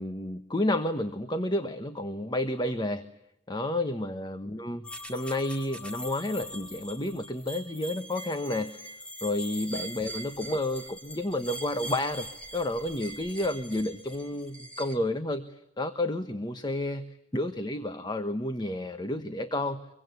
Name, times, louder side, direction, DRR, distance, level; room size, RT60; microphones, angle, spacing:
voice 1, 0.0-3.1 3.5-4.8 5.1-8.9 9.2-17.1 17.3-19.8, left 1 dB, 20° left, 9 dB, 1.2 m, -31 dB
sound 1, 4.8-15.0, equal, 5° left, 2.2 m, -42 dB
25.0 x 23.5 x 9.5 m, 0.79 s
head